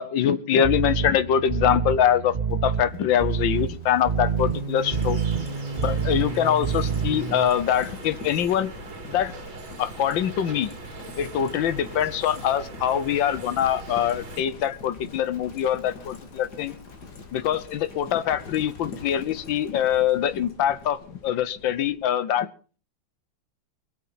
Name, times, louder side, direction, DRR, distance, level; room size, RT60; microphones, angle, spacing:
voice 1, 0.0-5.2 5.7-8.7 9.1-9.3 9.8-10.7 11.1-16.8 17.3-22.5, left 9 dB, 75° left, 15 dB, 1.6 m, -24 dB
sound 1, 0.6-7.5, right 6 dB, 45° right, 0.5 m, -27 dB
Livestock farm animals working animals, 2.5-22.2, left 3 dB, 55° left, 2.4 m, -44 dB
sound 2, 4.8-14.4, right 3 dB, 80° right, 3.4 m, -41 dB
22.5 x 8.7 x 5.7 m, 0.39 s
omnidirectional pair, 2.1 m